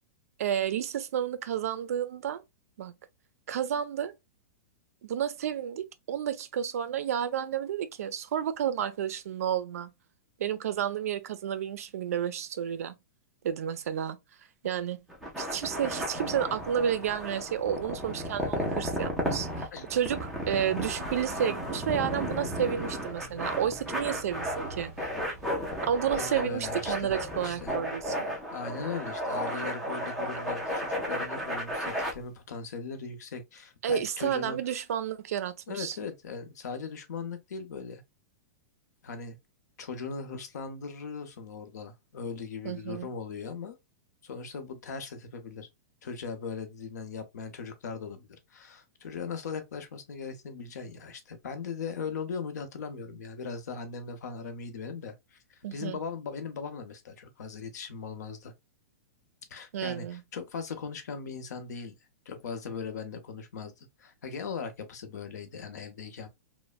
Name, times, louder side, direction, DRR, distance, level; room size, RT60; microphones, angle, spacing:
voice 1, 0.4-2.4 2.8-2.9 3.5-4.1 5.0-9.9 10.4-13.0 13.4-14.2 14.6-15.0 15.4-24.9 25.8-28.3 33.8-36.0 42.6-43.1 55.6-56.0 59.7-60.2, right 9 dB, 60° right, 0.4 m, -31 dB
sound 1, 15.1-32.1, equal, ahead, 0.4 m, -34 dB
sound 2, 21.6-28.4, right 3 dB, 20° right, 1.1 m, -48 dB
voice 2, 26.2-27.1 27.4-27.7 28.5-34.6 35.7-38.0 39.0-39.4 39.8-43.8 44.2-45.7 46.0-58.5 59.5-61.9 62.3-66.3, left 5 dB, 85° left, 0.7 m, -39 dB
3.1 x 2.1 x 2.3 m
supercardioid pair, 180°, 9 cm